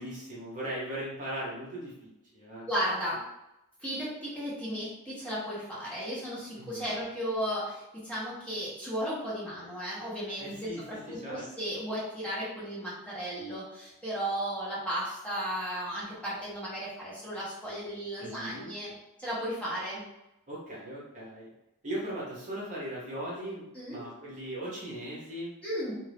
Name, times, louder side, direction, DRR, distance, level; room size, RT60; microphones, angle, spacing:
voice 1, 0.0-2.7 6.5-6.9 10.4-11.4 18.2-18.7 20.5-21.5 21.8-25.5, right 1 dB, 35° right, -6 dB, 1.0 m, -39 dB
voice 2, 2.6-3.2 3.8-20.0 23.7-24.0 25.6-25.9, equal, 5° left, -9 dB, 1.0 m, -35 dB
2.7 x 2.5 x 3.3 m, 0.91 s
head